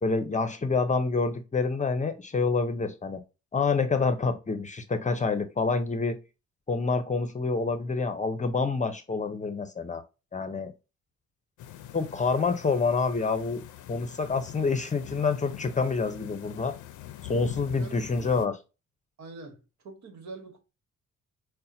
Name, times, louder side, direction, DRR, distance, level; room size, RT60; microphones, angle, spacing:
voice 1, 0.0-3.2 3.5-6.2 6.7-10.0 10.3-10.7 11.9-13.6 13.9-16.7 17.2-18.5, left 4 dB, 25° left, 0.7 m, -27 dB
sound 1, 11.6-18.5, left 12 dB, 80° left, 0.5 m, -44 dB
voice 2, 17.4-18.3 19.2-20.6, right 3 dB, 65° right, 1.3 m, -45 dB
5.5 x 2.2 x 2.6 m
cardioid pair, 90°, 30 cm